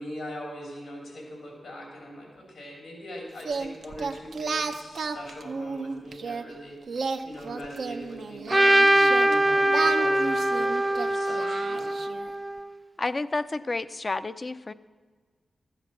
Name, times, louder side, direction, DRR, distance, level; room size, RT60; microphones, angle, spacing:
voice 1, 0.0-11.9, equal, 85° left, -1 dB, 3.3 m, -41 dB
Singing, 3.4-6.4 6.9-9.3 9.7-12.3, right 4 dB, 75° right, 0.6 m, -32 dB
Trumpet, 8.5-12.7, right 1 dB, 15° right, 0.5 m, -22 dB
voice 2, 13.0-14.7, left 3 dB, 40° left, 12 dB, 0.5 m, -30 dB
12.5 x 8.0 x 6.0 m, 1.5 s
cardioid pair, 45°, 0 cm